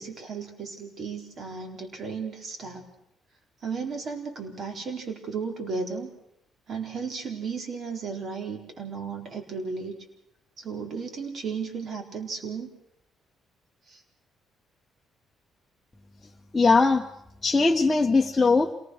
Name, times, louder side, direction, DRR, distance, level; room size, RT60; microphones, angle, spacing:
voice 1, 0.0-2.9 3.6-6.1 6.7-10.0 10.6-12.7 13.9-14.0, right 5 dB, 45° right, 4 dB, 4.2 m, -34 dB
voice 2, 16.5-17.0 17.4-18.7, left 3 dB, 15° left, 0 dB, 1.3 m, -20 dB
27.5 x 19.0 x 6.5 m, 0.77 s
cardioid pair, 115°, 0 cm